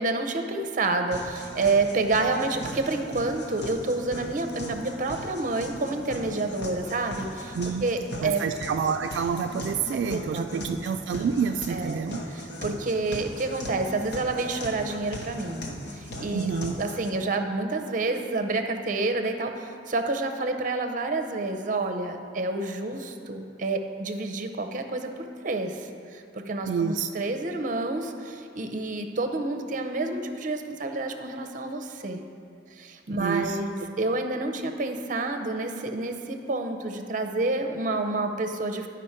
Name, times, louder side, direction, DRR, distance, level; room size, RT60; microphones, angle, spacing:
voice 1, 0.0-7.6 7.8-8.5 9.9-10.8 11.7-15.7 15.9-16.5 16.8-32.2 32.7-38.9, right 2 dB, 45° right, 5 dB, 0.6 m, -29 dB
sound 1, 1.1-17.1, left 1 dB, 70° left, 1.0 m, -39 dB
voice 2, 8.2-12.2 16.3-16.8 26.7-27.1 33.2-33.6, right 6 dB, 85° right, 6 dB, 0.3 m, -28 dB
11.0 x 5.1 x 4.4 m, 2.4 s
head